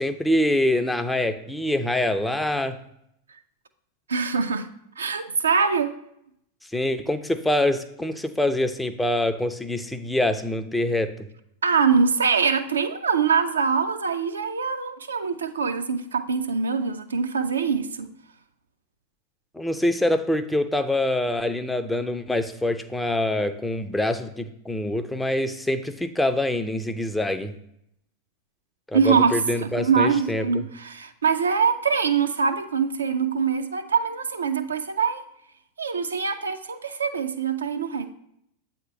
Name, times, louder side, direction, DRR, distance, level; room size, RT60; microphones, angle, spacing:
voice 1, 0.0-2.8 6.7-11.1 19.5-27.5 28.9-30.7, left 1 dB, 5° left, 9 dB, 0.4 m, -25 dB
voice 2, 4.1-4.7 5.0-5.9 11.6-18.1 28.9-29.4 29.6-35.2 35.8-38.1, right 5 dB, 70° right, 8 dB, 0.4 m, -23 dB
7.8 x 2.9 x 4.7 m, 0.76 s
figure-of-eight pair, 90°, 0 cm